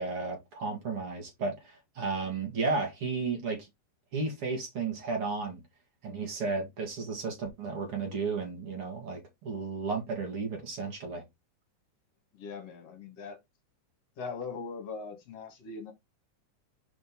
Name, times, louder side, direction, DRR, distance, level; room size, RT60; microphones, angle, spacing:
voice 1, 0.0-3.7 4.1-5.6 6.0-11.2, right 4 dB, 45° right, 2.9 m, -33 dB
voice 2, 12.3-13.4 14.2-15.9, left 4 dB, 55° left, 2.3 m, -40 dB
5.3 x 5.0 x 3.6 m
omnidirectional pair, 3.7 m